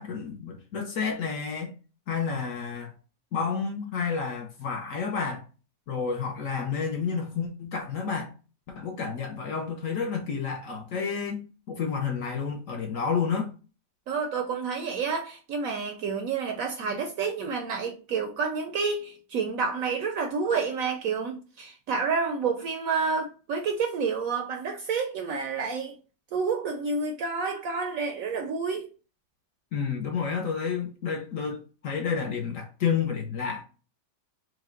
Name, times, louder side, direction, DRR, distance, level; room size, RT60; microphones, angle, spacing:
voice 1, 0.0-1.7 2.1-2.9 3.3-5.4 5.9-8.3 8.7-13.5 29.7-33.6, left 6 dB, 60° left, 0.9 m, -30 dB
voice 2, 14.1-25.9 26.3-28.9, right 5 dB, 70° right, 0.8 m, -29 dB
4.8 x 2.2 x 3.7 m
omnidirectional pair, 1.8 m